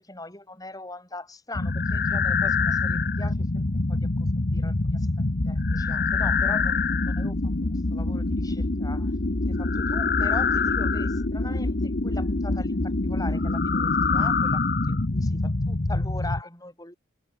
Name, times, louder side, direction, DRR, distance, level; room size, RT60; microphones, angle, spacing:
voice 1, 0.0-5.1 5.4-7.4 7.9-9.1 9.5-16.9, left 2 dB, 15° left, 6.2 m, -41 dB
sound 1, 1.5-16.4, left 3 dB, 45° left, 1.0 m, -25 dB
head